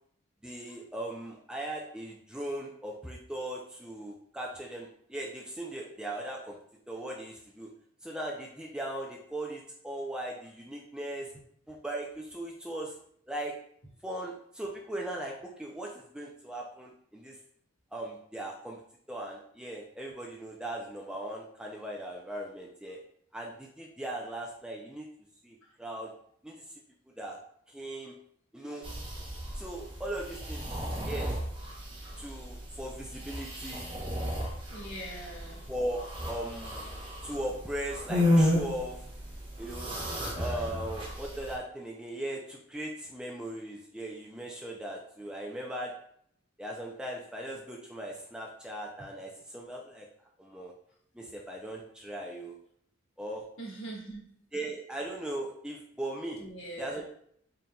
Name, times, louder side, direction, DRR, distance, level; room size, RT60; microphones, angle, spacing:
voice 1, 0.4-6.6 6.9-7.7 8.0-11.3 11.7-13.0 13.3-13.6 14.0-17.4 17.9-18.8 19.1-23.0 23.3-25.1 25.4-26.1 26.4-26.6 27.2-27.4 27.7-28.1 28.5-28.9 29.5-30.7 31.0-31.3 32.2-33.9 35.7-36.9 37.2-39.0 39.6-39.9 40.4-45.9 46.6-50.1 50.4-50.7 51.1-52.6 53.2-53.4 54.5-56.4 56.8-57.0, right 1 dB, 5° right, -1 dB, 0.3 m, -38 dB
sound 1, 28.8-41.6, left 1 dB, 25° right, 0.8 m, -33 dB
voice 2, 34.7-35.7 53.6-54.3 56.4-57.0, right 1 dB, 65° left, -4 dB, 1.5 m, -42 dB
4.2 x 3.8 x 2.2 m, 0.66 s
head